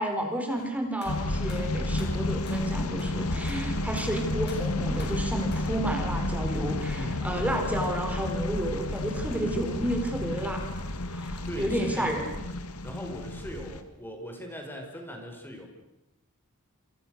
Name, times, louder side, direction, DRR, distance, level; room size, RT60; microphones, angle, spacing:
voice 1, 0.0-12.4, right 1 dB, 5° right, 3 dB, 4.2 m, -31 dB
sound 1, 0.6-5.7, left 3 dB, 50° left, 6.7 m, -47 dB
sound 2, 1.1-13.8, left 2 dB, 90° left, 2.3 m, -31 dB
voice 2, 6.9-7.3 11.4-12.3 12.8-15.7, equal, 10° left, 3 dB, 5.4 m, -39 dB
28.5 x 28.0 x 6.6 m, 0.94 s
head